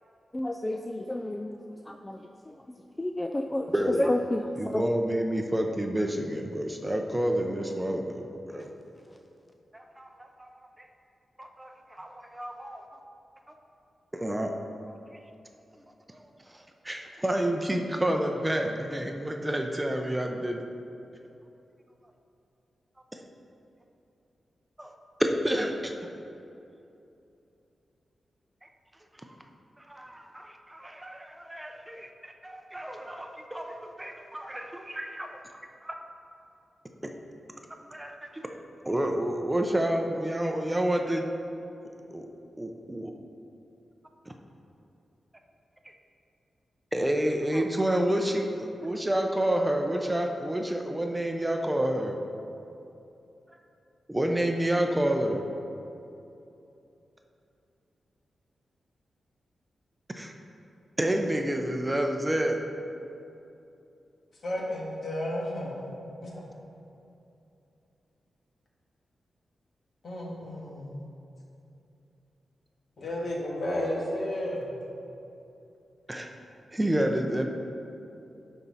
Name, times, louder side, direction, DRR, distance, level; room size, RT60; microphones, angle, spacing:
voice 1, 0.3-1.6 3.0-3.7 4.1-4.4 4.7-4.8, left 1 dB, 20° left, 4 dB, 0.3 m, -30 dB
voice 2, 3.7-4.1 4.6-8.7 9.7-10.7 11.4-12.9 14.1-14.5 16.1-20.6 24.8-24.9 25.2-25.9 28.6-28.7 29.9-35.4 35.8-35.9 37.9-38.4 38.8-41.2 42.1-42.3 42.6-43.1 44.3-44.4 46.9-52.2 54.1-55.4 60.2-60.3 61.0-62.7 76.1-76.3 76.7-77.5, right 1 dB, 15° right, 3 dB, 0.6 m, -29 dB
voice 3, 64.4-65.9 66.2-66.5 70.0-71.0 73.0-74.8, left 1 dB, 60° left, -3 dB, 1.8 m, -32 dB
11.5 x 4.5 x 4.1 m, 2.8 s
cardioid pair, 80°, 0 cm